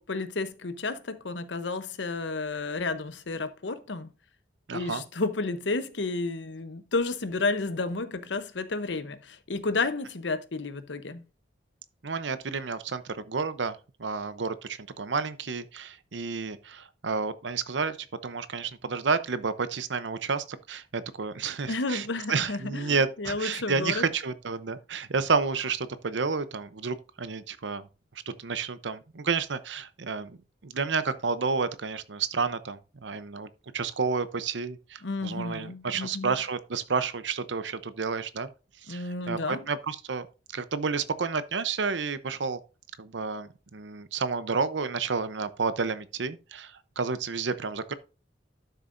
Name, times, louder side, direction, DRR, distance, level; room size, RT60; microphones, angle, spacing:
voice 1, 0.0-4.1 4.7-11.2 21.7-24.0 35.0-36.3 38.9-39.7, left 3 dB, 80° left, 0.9 m, -31 dB
voice 2, 4.7-5.0 12.0-18.0 18.2-27.9 28.3-30.4 30.6-38.5 38.8-40.3 40.5-42.6 43.0-47.9, right 5 dB, 85° right, 0.8 m, -30 dB
12.0 x 6.6 x 2.6 m
head